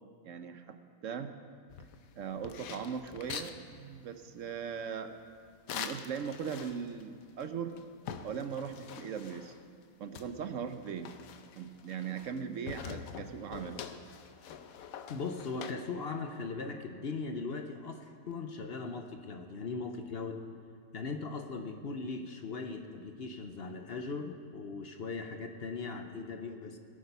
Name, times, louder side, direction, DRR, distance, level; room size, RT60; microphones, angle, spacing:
voice 1, 0.2-0.8 1.0-1.3 2.2-5.2 5.7-7.8 8.2-9.5 10.0-11.1 11.6-13.8, right 7 dB, 65° right, 8 dB, 1.1 m, -39 dB
sound 1, 1.7-3.6 5.7-7.0 7.4-7.5 7.8-9.6 10.1-12.4 12.7-15.7, left 7 dB, 80° left, 1.2 m, -44 dB
voice 2, 15.1-20.4 20.9-26.8, left 4 dB, 50° left, 6 dB, 0.9 m, -39 dB
19.0 x 8.8 x 5.5 m, 2.2 s
omnidirectional pair, 1.5 m